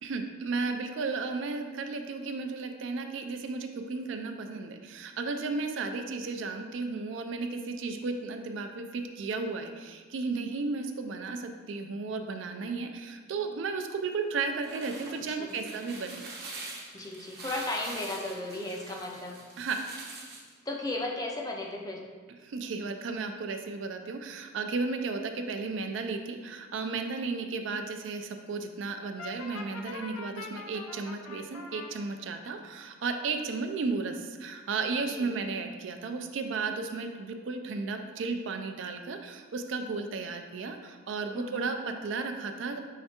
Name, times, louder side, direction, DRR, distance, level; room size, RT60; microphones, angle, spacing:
voice 1, 0.0-16.2 19.6-19.8 22.4-42.8, right 4 dB, 60° right, 6 dB, 0.4 m, -34 dB
sound 1, 14.4-20.5, right 3 dB, 45° right, 0.9 m, -44 dB
voice 2, 16.9-19.4 20.7-22.0 35.1-35.4 41.3-41.7, left 2 dB, 20° left, 0 dB, 0.4 m, -35 dB
Brass instrument, 29.2-31.9, left 3 dB, 80° left, 0.5 m, -42 dB
5.7 x 3.3 x 2.8 m, 1.5 s
head